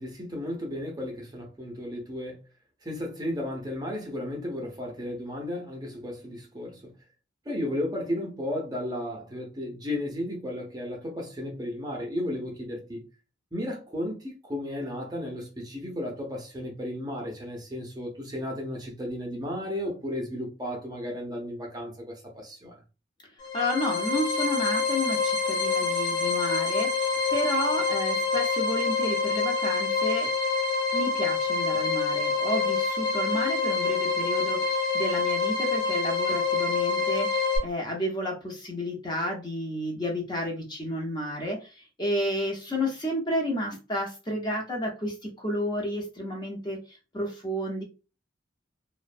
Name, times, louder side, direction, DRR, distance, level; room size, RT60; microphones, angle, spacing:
voice 1, 0.0-2.4 2.8-6.9 7.5-13.1 13.5-22.7, left 1 dB, 20° right, 0.6 m, -34 dB
sound 1, 23.4-37.6, left 4 dB, 50° left, 1.0 m, -26 dB
voice 2, 23.5-30.3 30.9-47.8, left 1 dB, 20° left, 0.6 m, -31 dB
2.4 x 2.1 x 2.5 m
head